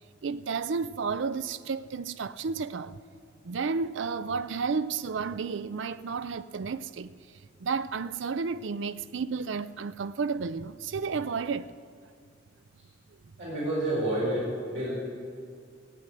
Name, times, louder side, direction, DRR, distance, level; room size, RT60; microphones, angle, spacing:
voice 1, 0.2-3.0 3.4-7.1 7.6-11.7, right 5 dB, 65° right, 0.4 m, -32 dB
voice 2, 13.4-14.9, right 1 dB, 85° right, 4.5 m, -29 dB
16.0 x 7.9 x 9.1 m
head